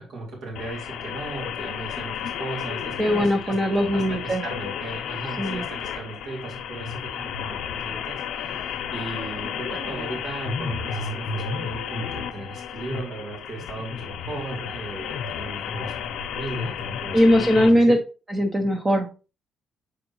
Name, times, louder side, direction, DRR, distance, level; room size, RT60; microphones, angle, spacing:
voice 1, 0.0-8.2 8.9-18.0, right 2 dB, 75° right, -3 dB, 4.1 m, -36 dB
sound 1, 0.6-17.7, left 7 dB, 80° left, 0.7 m, -32 dB
voice 2, 3.0-4.4 5.4-5.6 17.1-18.0 18.3-19.3, equal, 20° right, 3 dB, 0.9 m, -20 dB
7.0 x 5.1 x 3.0 m, 0.32 s
cardioid pair, 90°, 0 cm